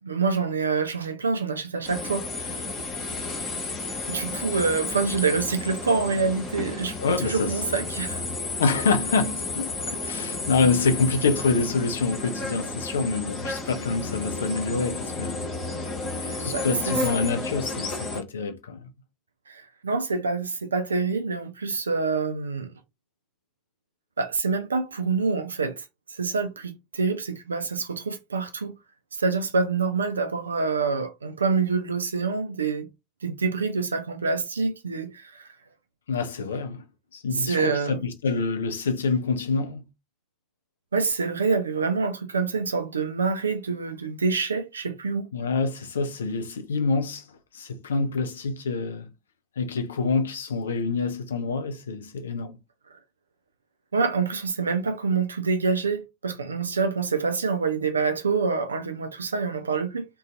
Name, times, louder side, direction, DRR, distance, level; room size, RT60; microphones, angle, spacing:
voice 1, 0.0-2.7 4.1-8.3 16.2-17.2 19.5-22.7 24.2-25.8 26.1-28.8 29.1-32.9 33.2-35.5 37.3-38.0 40.9-45.3 53.9-60.1, right 4 dB, 80° right, 0.3 m, -26 dB
sound 1, 1.8-18.2, left 3 dB, 55° left, 1.0 m, -32 dB
voice 2, 7.0-7.5 8.6-15.5 16.4-18.9 36.1-36.8 37.1-39.8 45.3-47.2 47.5-49.1 49.6-52.6, left 4 dB, 75° left, 0.4 m, -26 dB
2.5 x 2.2 x 2.3 m
figure-of-eight pair, 65°, 0 cm